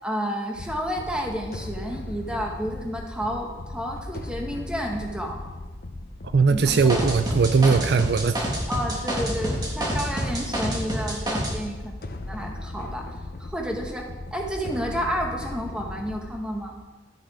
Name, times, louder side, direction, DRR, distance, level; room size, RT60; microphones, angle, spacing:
voice 1, 0.0-5.4 6.5-7.1 8.7-11.9 12.3-16.7, equal, 5° right, 1 dB, 1.1 m, -31 dB
sound 1, 0.5-16.7, left 2 dB, 55° left, 0.7 m, -37 dB
voice 2, 6.3-8.4, right 5 dB, 60° right, 11 dB, 0.4 m, -20 dB
sound 2, 6.7-11.5, right 1 dB, 20° right, 1.8 m, -28 dB
12.0 x 6.3 x 4.8 m, 1.2 s
head